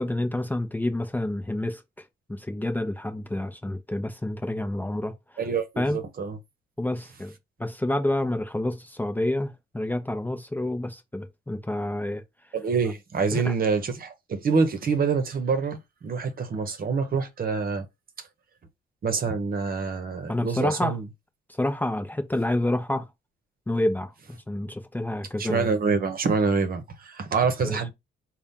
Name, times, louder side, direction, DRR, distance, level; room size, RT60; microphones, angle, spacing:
voice 1, 0.0-1.8 2.3-5.1 5.8-6.0 6.8-7.3 7.6-12.2 13.3-13.5 20.3-21.0 21.6-23.1 23.7-25.7 27.6-27.8, left 1 dB, 10° left, 0.7 m, -28 dB
voice 2, 5.4-6.4 12.5-17.9 19.0-21.0 25.4-27.9, right 5 dB, 50° right, 1.0 m, -26 dB
4.1 x 2.4 x 3.7 m
cardioid pair, 90°, 20 cm